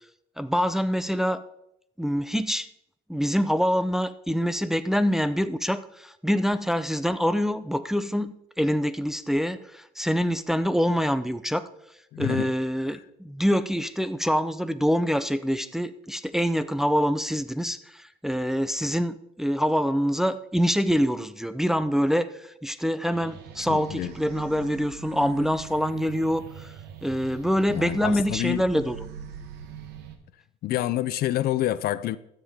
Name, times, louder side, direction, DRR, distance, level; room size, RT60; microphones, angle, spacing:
voice 1, 0.4-1.4 2.0-2.7 3.1-11.6 12.2-26.7 27.0-29.0, equal, ahead, 0.5 m, -25 dB
voice 2, 12.1-12.5 23.7-24.1 27.7-28.6 30.6-32.2, left 13 dB, 65° left, 0.5 m, -27 dB
sound 1, 23.1-30.2, right 7 dB, 90° right, 1.1 m, -42 dB
13.0 x 7.5 x 3.5 m
cardioid pair, 110°, 17 cm